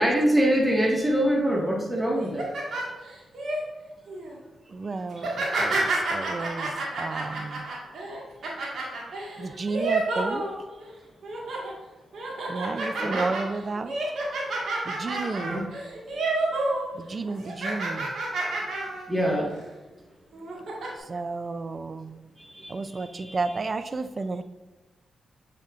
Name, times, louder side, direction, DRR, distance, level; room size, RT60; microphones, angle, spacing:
voice 1, 0.0-2.5 5.6-6.0 13.0-13.2 15.4-15.6 19.1-19.5 22.5-23.4, equal, 15° right, -2 dB, 1.7 m, -25 dB
sound 1, 2.2-3.6 4.1-4.4 5.1-10.9 11.2-11.7 12.1-16.9 17.1-19.1 19.5-19.6 20.3-20.9, right 2 dB, 70° right, 1.7 m, -29 dB
voice 2, 4.2-7.7 9.4-10.5 12.5-14.0 14.8-15.6 16.9-18.1 21.0-22.1 22.7-24.4, right 3 dB, 45° right, 12 dB, 0.5 m, -32 dB
7.9 x 5.3 x 2.5 m, 1.2 s
supercardioid pair, 45°, 0 cm